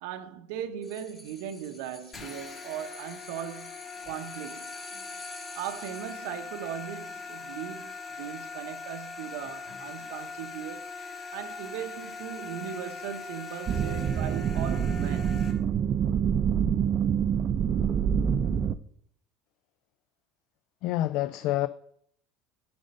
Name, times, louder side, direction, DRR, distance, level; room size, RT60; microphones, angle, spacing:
voice 1, 0.0-3.8 4.0-4.8 5.5-10.9 11.3-15.5, right 10 dB, 80° right, 0.7 m, -38 dB
sound 1, 0.8-6.5 6.8-6.9, left 2 dB, 20° left, 1.5 m, -48 dB
sound 2, 2.1-15.5, left 4 dB, 40° left, 3.4 m, -41 dB
sound 3, 13.7-18.7, right 8 dB, 40° right, 0.5 m, -26 dB
voice 2, 20.8-21.7, left 14 dB, 65° left, 0.3 m, -27 dB
10.5 x 5.2 x 5.3 m
supercardioid pair, 110°, 0 cm